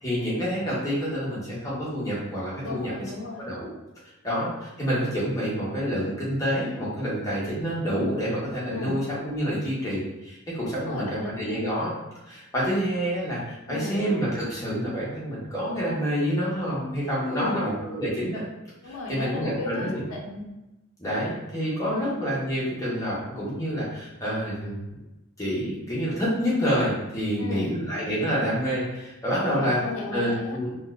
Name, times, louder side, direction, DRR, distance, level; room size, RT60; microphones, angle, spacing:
voice 1, 0.0-2.9 3.4-3.7 4.2-11.9 12.3-18.4 18.8-20.0 21.0-24.8 25.4-29.8 30.1-30.8, equal, 15° left, -7 dB, 1.0 m, -28 dB
voice 2, 2.6-3.5 8.7-9.0 10.7-11.7 13.7-14.0 17.3-17.7 18.8-20.4 21.8-22.1 27.4-27.7 29.4-30.6, left 2 dB, 70° left, -1 dB, 0.6 m, -34 dB
3.9 x 2.4 x 2.3 m, 0.99 s
head